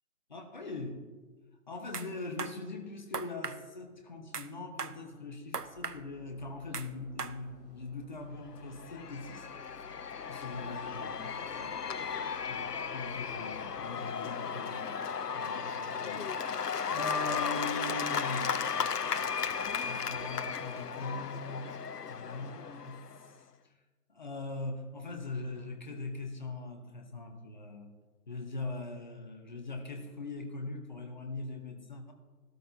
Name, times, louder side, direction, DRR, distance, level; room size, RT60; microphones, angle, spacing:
voice 1, 0.3-1.0 1.7-9.5 10.3-11.7 12.5-15.1 15.3-16.6 16.9-18.6 19.8-21.7 22.1-23.0 24.1-27.9 28.3-32.1, left 3 dB, 30° left, 5 dB, 1.0 m, -41 dB
sound 1, 1.9-2.1 2.4-2.5 3.1-3.6 4.3-4.5 4.8-5.0 5.5-6.0 6.7-6.9 7.2-7.3, right 5 dB, 90° right, 0.8 m, -37 dB
sound 2, 5.5-13.8, left 2 dB, 45° right, 3.1 m, -57 dB
Cheering / Applause / Crowd, 8.5-23.3, left 6 dB, 90° left, 0.6 m, -35 dB
15.0 x 13.0 x 2.7 m, 1.4 s
figure-of-eight pair, 150°, 46 cm